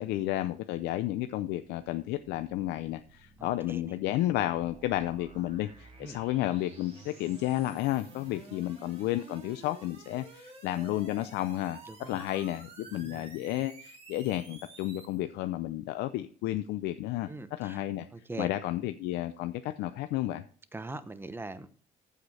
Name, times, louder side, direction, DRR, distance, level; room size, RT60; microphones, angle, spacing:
voice 1, 0.0-17.3 17.6-18.1 18.4-20.4, left 14 dB, 85° left, 10 dB, 0.5 m, -32 dB
sound 1, 1.9-15.2, right 3 dB, 35° right, 3.0 m, -52 dB
voice 2, 3.4-4.0 6.0-6.2 8.3-8.6 11.8-12.2 12.9-13.3 17.3-17.9 18.1-18.5 20.7-21.7, right 2 dB, 15° right, 11 dB, 0.9 m, -42 dB
14.5 x 5.0 x 4.2 m, 0.43 s
cardioid pair, 110°, 17 cm